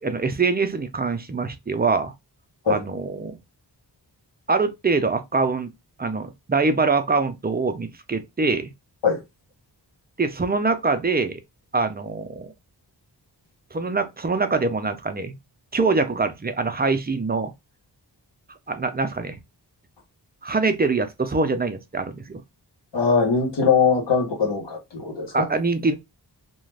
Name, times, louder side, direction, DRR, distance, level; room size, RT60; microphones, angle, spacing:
voice 1, 0.0-2.1 2.7-3.4 4.5-5.7 6.0-8.7 10.2-11.4 11.7-12.5 13.7-15.4 15.7-17.5 18.7-19.4 20.4-22.4 25.3-26.0, right 4 dB, 25° right, 0.4 m, -24 dB
voice 2, 22.9-25.5, left 5 dB, 80° left, 1.1 m, -21 dB
2.4 x 2.2 x 3.2 m
wide cardioid pair, 90°, 42 cm